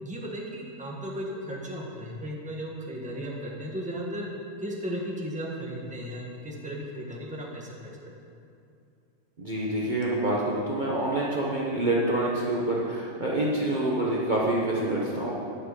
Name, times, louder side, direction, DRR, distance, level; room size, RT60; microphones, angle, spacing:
voice 1, 0.0-4.3 4.6-8.1, equal, 5° right, -2 dB, 1.4 m, -35 dB
voice 2, 9.4-15.3, right 1 dB, 35° right, -5 dB, 1.2 m, -27 dB
11.0 x 5.8 x 8.2 m, 2.6 s
omnidirectional pair, 1.5 m